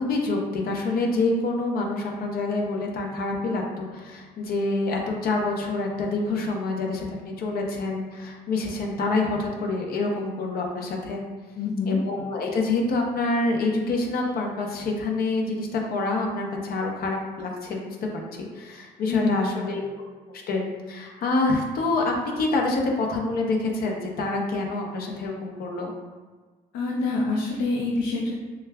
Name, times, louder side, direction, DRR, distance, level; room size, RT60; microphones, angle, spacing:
voice 1, 0.0-11.2 11.9-19.9 20.3-25.9, left 2 dB, 60° left, 0 dB, 0.8 m, -27 dB
voice 2, 11.6-12.0 19.1-19.7 26.7-28.3, left 3 dB, 90° left, -3 dB, 0.5 m, -26 dB
6.4 x 2.3 x 2.3 m, 1.3 s
cardioid pair, 110°, 17 cm